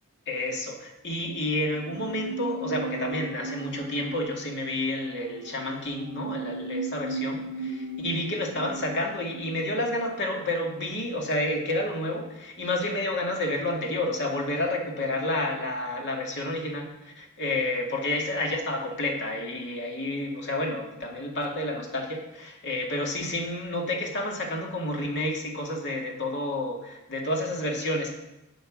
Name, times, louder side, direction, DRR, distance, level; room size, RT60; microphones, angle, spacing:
voice 1, 0.3-28.1, left 1 dB, 55° left, 0 dB, 2.2 m, -30 dB
sound 1, 1.7-11.0 11.3-11.4, right 3 dB, 70° right, 0.9 m, -37 dB
8.9 x 8.1 x 6.3 m, 0.91 s
head